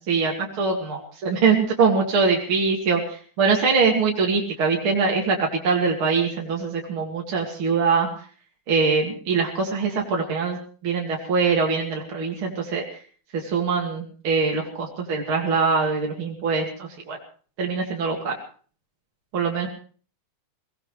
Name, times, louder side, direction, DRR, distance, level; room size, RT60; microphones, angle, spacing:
voice 1, 0.0-8.1 8.7-10.6 10.8-13.0 13.3-17.2 17.6-18.3 19.3-19.7, right 5 dB, 45° right, 0 dB, 2.9 m, -23 dB
23.0 x 18.5 x 3.3 m, 0.42 s
omnidirectional pair, 3.5 m